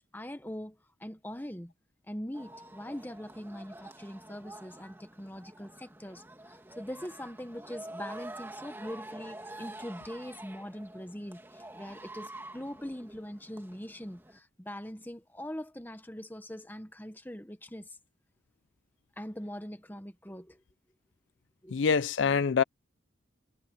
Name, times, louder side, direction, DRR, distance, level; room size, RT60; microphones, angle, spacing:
voice 1, 0.1-1.7 2.1-18.0 19.2-20.6 21.6-21.8, equal, 10° left, 1.3 m, -42 dB
sound 1, 2.3-14.4, right 1 dB, 10° right, 2.3 m, -47 dB
voice 2, 21.7-22.6, left 6 dB, 75° left, 0.5 m, -25 dB
head